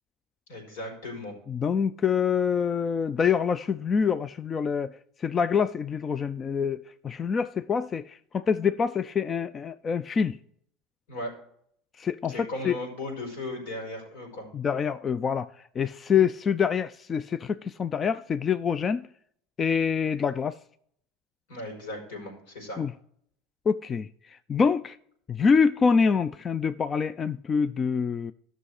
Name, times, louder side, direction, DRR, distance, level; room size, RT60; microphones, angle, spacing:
voice 1, 0.5-1.3 11.1-11.3 12.3-14.5 21.5-22.8, left 1 dB, 80° left, 5.1 m, -36 dB
voice 2, 1.5-10.4 12.0-12.8 14.5-19.1 19.6-20.6 22.8-22.9 23.7-25.0 25.3-28.3, left 6 dB, 30° left, 0.4 m, -26 dB
12.5 x 6.5 x 4.9 m
supercardioid pair, 105°, 0 cm